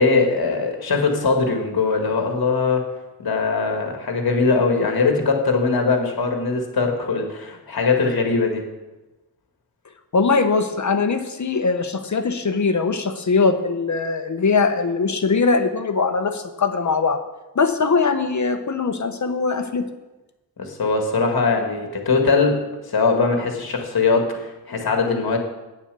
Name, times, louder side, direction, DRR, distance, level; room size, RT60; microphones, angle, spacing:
voice 1, 0.0-2.9 3.2-8.6 20.6-25.4, left 4 dB, 60° left, 3 dB, 1.9 m, -21 dB
voice 2, 10.1-17.2 17.5-19.8, left 4 dB, 45° left, 7 dB, 1.0 m, -21 dB
9.6 x 7.0 x 6.8 m, 1.1 s
wide cardioid pair, 140°, 41 cm